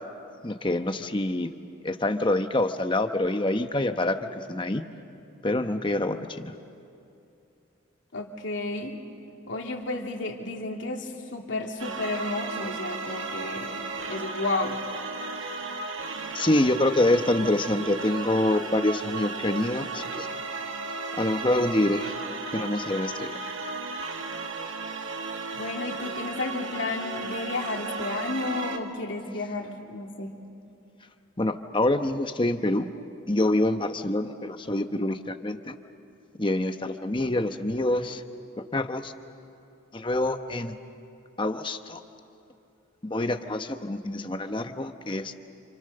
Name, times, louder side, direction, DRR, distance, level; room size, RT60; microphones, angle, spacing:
voice 1, 0.4-1.5 1.8-4.2 4.5-4.8 5.4-6.5 16.3-20.3 21.2-22.1 22.5-23.3 31.4-32.9 33.3-35.7 36.4-38.2 38.7-39.1 39.9-40.7 41.4-42.0 43.1-45.3, left 1 dB, 25° left, 8 dB, 1.0 m, -26 dB
voice 2, 8.1-9.0 9.5-14.8 25.5-30.4, left 2 dB, 65° left, 1 dB, 2.8 m, -32 dB
sound 1, 11.8-28.8, right 4 dB, 70° right, 1.7 m, -35 dB
29.5 x 28.5 x 6.8 m, 2.8 s
head